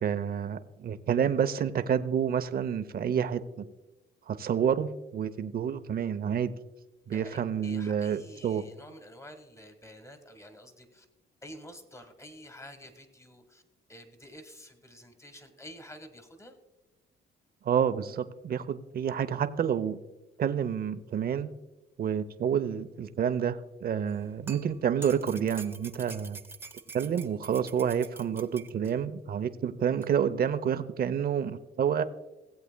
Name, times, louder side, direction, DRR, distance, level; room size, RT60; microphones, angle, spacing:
voice 1, 0.0-3.7 4.3-6.5 7.1-8.6 17.6-20.0 20.4-21.5 22.0-26.4 26.9-32.0, right 8 dB, 50° right, 12 dB, 0.7 m, -29 dB
voice 2, 7.1-11.1 11.4-13.6 13.9-16.6, equal, 15° left, 7 dB, 1.5 m, -49 dB
sound 1, 24.1-28.9 30.0-30.1, right 3 dB, 10° right, 0.7 m, -46 dB
18.0 x 8.1 x 2.2 m, 1.1 s
cardioid pair, 90°, 20 cm